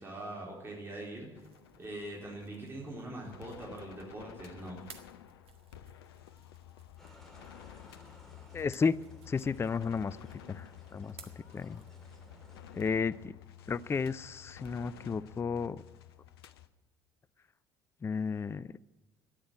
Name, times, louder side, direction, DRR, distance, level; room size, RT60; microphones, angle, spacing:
voice 1, 0.0-1.4 1.8-4.8, right 1 dB, 20° right, -3 dB, 3.9 m, -42 dB
sound 1, 1.2-12.3, right 6 dB, 45° right, 1.8 m, -60 dB
sound 2, 1.3-16.7, left 10 dB, 75° left, 0.7 m, -52 dB
sound 3, 7.0-12.9, equal, 5° left, 3.9 m, -59 dB
voice 2, 8.5-9.0 9.3-10.2 10.5-10.7 10.9-11.2 11.5-11.8 12.7-13.3 13.7-15.8 18.0-18.7, left 5 dB, 20° left, 18 dB, 0.4 m, -32 dB
13.5 x 10.0 x 9.0 m, 1.1 s
figure-of-eight pair, 55°, 13 cm